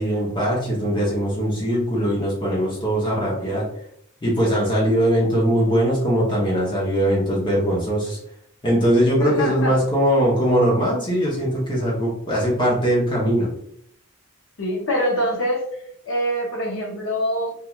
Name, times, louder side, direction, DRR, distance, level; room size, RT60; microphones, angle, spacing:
voice 1, 0.0-3.7 4.2-8.2 8.6-13.5, equal, 20° left, -5 dB, 0.7 m, -21 dB
voice 2, 9.2-9.8 14.6-15.7 16.1-17.5, equal, 60° left, 0 dB, 0.7 m, -24 dB
2.9 x 2.3 x 2.3 m, 0.69 s
head